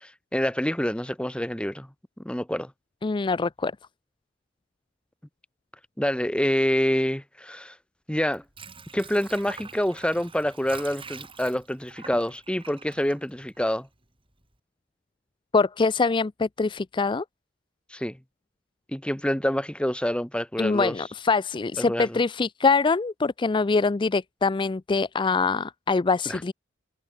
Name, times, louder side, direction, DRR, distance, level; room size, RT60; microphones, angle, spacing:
voice 1, 0.0-1.9 2.2-2.7 6.0-7.7 8.1-8.4 8.9-13.9 17.9-18.2 18.9-20.9 21.8-22.2 26.2-26.4, equal, 5° left, 1.3 m, -27 dB
voice 2, 3.0-3.7 15.5-17.2 20.6-26.5, left 4 dB, 25° left, 0.4 m, -24 dB
Water / Sink (filling or washing), 8.2-14.0 14.4-14.5, right 5 dB, 25° right, 6.3 m, -45 dB
head